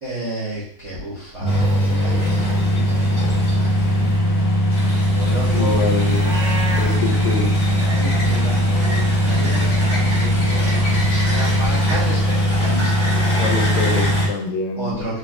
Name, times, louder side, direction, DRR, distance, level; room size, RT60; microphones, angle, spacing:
voice 1, 0.0-5.9 6.7-7.3 7.9-13.4 14.8-15.2, right 1 dB, 80° right, -10 dB, 0.6 m, -32 dB
sound 1, 1.4-14.3, equal, 45° left, 1.5 m, -19 dB
Model A Fords, 1.4-4.2 4.7-14.2, equal, 25° left, 1.5 m, -28 dB
voice 2, 4.0-4.3 5.5-6.4 6.8-7.6 12.7-12.9 13.4-15.2, left 4 dB, 80° left, 3 dB, 1.8 m, -26 dB
Livestock farm animals working animals, 6.1-7.0, right 1 dB, 50° right, 1.3 m, -28 dB
4.6 x 4.0 x 2.3 m, 0.65 s
omnidirectional pair, 3.3 m